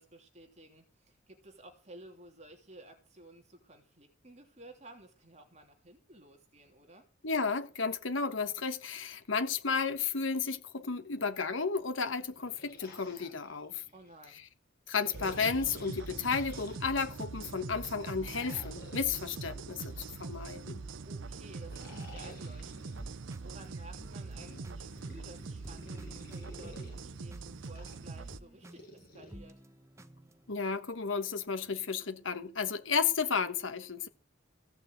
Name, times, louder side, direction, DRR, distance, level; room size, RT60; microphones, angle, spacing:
voice 1, 0.0-7.0 13.9-14.4 21.0-29.5, right 1 dB, 35° right, 3.1 m, -54 dB
voice 2, 7.2-13.8 14.9-19.9 20.2-20.8 30.5-34.1, left 5 dB, 80° left, 1.2 m, -33 dB
sound 1, 12.2-14.2 15.0-17.3 18.2-20.7 21.5-23.2 24.1-26.9 27.6-29.3, left 1 dB, 50° left, 7.2 m, -53 dB
sound 2, 15.1-28.4, right 4 dB, 75° right, 0.7 m, -43 dB
sound 3, 22.0-30.5, right 1 dB, 15° right, 0.9 m, -54 dB
16.5 x 6.8 x 8.0 m
head